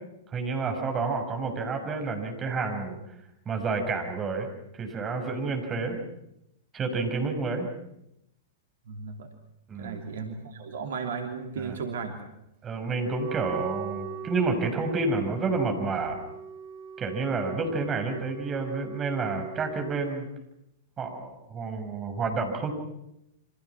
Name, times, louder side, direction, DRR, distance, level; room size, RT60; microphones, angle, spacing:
voice 1, 0.3-3.0 3.5-4.5 4.7-6.0 6.7-7.7 9.7-10.0 11.6-11.8 12.6-16.2 17.0-20.3 21.0-22.7, right 4 dB, 25° right, 4 dB, 6.1 m, -29 dB
voice 2, 8.9-9.3 9.8-12.3, right 5 dB, 65° right, 4 dB, 3.0 m, -35 dB
Wind instrument woodwind instrument, 13.0-20.0, right 6 dB, 45° right, 3.1 m, -41 dB
28.5 x 26.0 x 6.1 m, 0.82 s
figure-of-eight pair, 105°, 0 cm